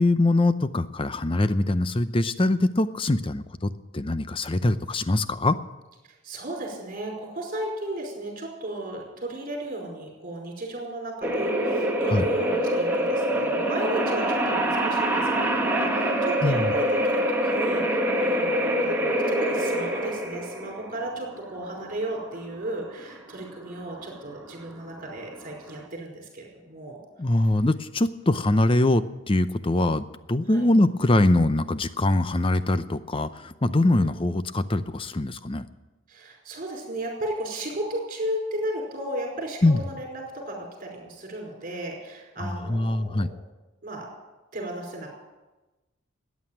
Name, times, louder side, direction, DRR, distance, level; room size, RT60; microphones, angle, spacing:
voice 1, 0.0-5.6 12.1-12.3 16.4-16.7 27.2-35.6 39.6-39.8 42.4-43.3, left 2 dB, 25° left, 13 dB, 0.6 m, -23 dB
voice 2, 6.2-27.0 30.5-30.6 34.0-34.1 36.1-39.6 39.9-43.3 43.8-44.1 44.5-45.1, right 1 dB, 40° right, 0 dB, 5.1 m, -34 dB
sound 1, 11.2-25.8, right 1 dB, 10° right, 1.5 m, -25 dB
14.5 x 9.6 x 9.0 m, 1.1 s
head